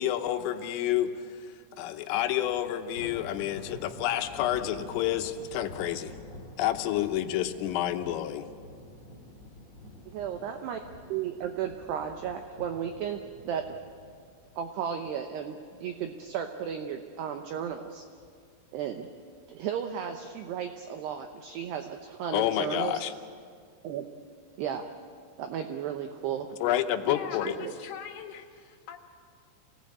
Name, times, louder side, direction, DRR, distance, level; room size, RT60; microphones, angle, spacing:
voice 1, 0.0-1.5 1.8-6.1 6.6-8.5 22.3-23.1 26.6-27.6, left 12 dB, 80° left, 7 dB, 3.5 m, -29 dB
Thunder, 2.4-15.7 16.0-16.3 16.7-16.8 17.7-18.3, left 1 dB, 25° left, 4.4 m, -48 dB
voice 2, 10.1-10.8 11.1-13.7 14.6-18.0 18.7-19.1 19.5-23.1 23.8-24.1 24.6-24.9 25.4-26.5 27.1-27.2 27.6-27.7, right 8 dB, 75° right, 6 dB, 2.5 m, -34 dB
voice 3, 27.0-29.0, left 8 dB, 65° left, 4 dB, 3.5 m, -40 dB
27.5 x 19.0 x 8.5 m, 2.1 s
omnidirectional pair, 5.9 m